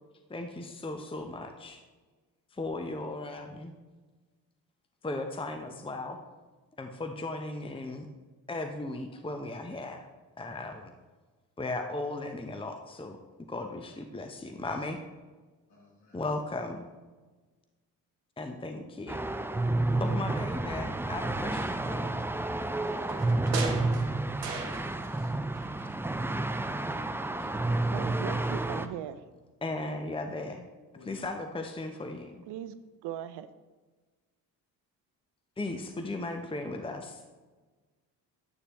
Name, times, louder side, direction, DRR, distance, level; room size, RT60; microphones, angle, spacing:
voice 1, 0.3-1.8 2.5-3.7 5.0-6.2 6.8-8.1 8.5-10.1 10.4-10.9 11.6-13.2 13.5-15.0 16.1-16.8 18.4-19.2 20.0-22.2 29.6-30.7 31.0-32.4 35.6-37.2, left 2 dB, 10° left, 5 dB, 0.9 m, -36 dB
voice 2, 15.7-16.2 30.9-31.3, left 2 dB, 55° left, -3 dB, 3.4 m, -56 dB
sound 1, 19.1-28.9, right 2 dB, 5° right, 0.5 m, -30 dB
sound 2, 22.8-25.3 25.5-26.6 27.0-27.1, right 4 dB, 85° right, 1.0 m, -38 dB
voice 3, 27.9-29.2 32.5-32.8 33.0-33.5, right 11 dB, 55° right, 13 dB, 0.7 m, -38 dB
11.0 x 9.8 x 3.1 m, 1.3 s
figure-of-eight pair, 45°, 48 cm